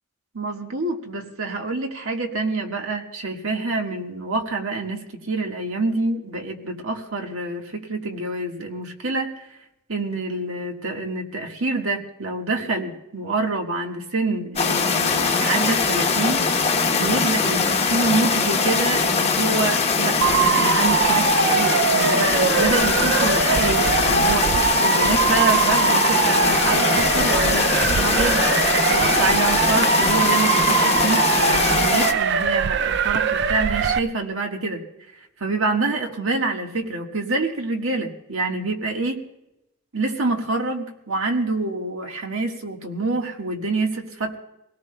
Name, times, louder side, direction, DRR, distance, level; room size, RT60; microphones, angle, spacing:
voice 1, 0.3-9.3 9.9-34.8 35.4-39.1 39.9-44.4, right 3 dB, 80° right, 2 dB, 1.6 m, -26 dB
sound 1, 14.6-32.1, left 4 dB, 30° left, 0.9 m, -21 dB
Motor vehicle (road) / Siren, 20.2-34.0, right 6 dB, 55° right, 0.4 m, -22 dB
23.0 x 18.0 x 2.2 m, 0.89 s
head